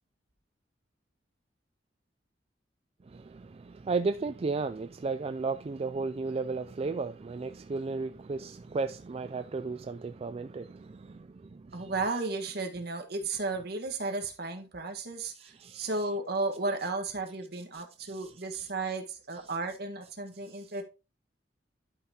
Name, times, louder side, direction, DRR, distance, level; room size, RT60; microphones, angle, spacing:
voice 1, 3.1-11.9 15.3-15.9 17.7-18.7 20.5-20.7, right 4 dB, 35° right, 0.4 m, -35 dB
voice 2, 11.7-15.3 15.7-20.8, right 3 dB, 60° right, 1.6 m, -34 dB
11.5 x 5.6 x 2.9 m
head